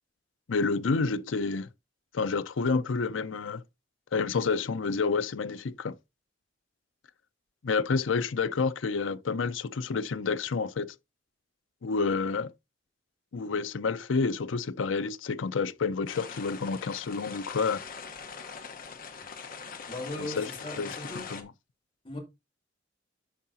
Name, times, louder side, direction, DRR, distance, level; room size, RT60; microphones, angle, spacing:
voice 1, 0.5-1.7 2.1-3.6 4.1-5.9 7.6-10.9 11.8-12.5 13.3-17.8 20.2-20.5 20.8-21.5, left 4 dB, 85° left, 0.5 m, -29 dB
sound 1, 16.1-21.4, left 5 dB, 50° left, 1.1 m, -42 dB
voice 2, 19.9-21.3 22.0-22.2, left 1 dB, 30° left, 3.5 m, -38 dB
13.0 x 4.7 x 2.8 m
head